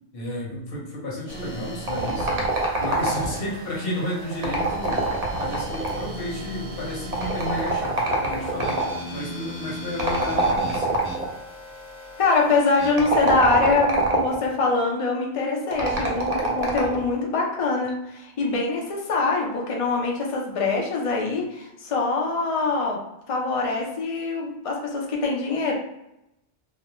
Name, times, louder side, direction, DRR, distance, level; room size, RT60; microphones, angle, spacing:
voice 1, 0.1-2.4 2.8-8.8 9.1-11.0, left 1 dB, 70° left, -3 dB, 1.0 m, -32 dB
sound 1, 1.3-12.9, right 1 dB, 15° right, 0.7 m, -38 dB
sound 2, 1.9-3.5 4.3-6.2 7.1-9.0 10.0-11.3 12.9-14.4 15.7-17.0, right 2 dB, 50° right, 0.6 m, -24 dB
voice 2, 12.2-23.0 23.3-25.7, left 3 dB, 50° left, 0 dB, 0.4 m, -24 dB
2.4 x 2.0 x 2.9 m, 0.86 s
omnidirectional pair, 1.0 m